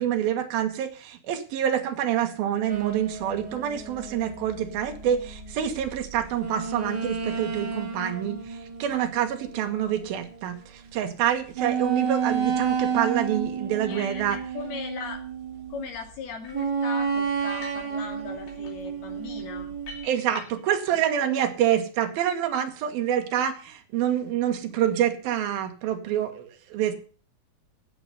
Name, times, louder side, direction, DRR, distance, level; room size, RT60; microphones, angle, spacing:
voice 1, 0.0-14.4 20.0-26.9, right 10 dB, 80° right, 6 dB, 3.2 m, -27 dB
sound 1, 2.7-10.4 10.9-11.0 11.5-16.0 16.5-20.1, right 6 dB, 40° right, 1.7 m, -31 dB
voice 2, 13.7-15.2 15.7-19.7 20.9-21.4, left 5 dB, 90° left, 4 dB, 4.5 m, -39 dB
sound 2, 16.4-16.7 17.4-17.9 18.2-20.8, left 4 dB, 75° left, 5.4 m, -46 dB
15.0 x 6.6 x 6.9 m, 0.38 s
omnidirectional pair, 4.3 m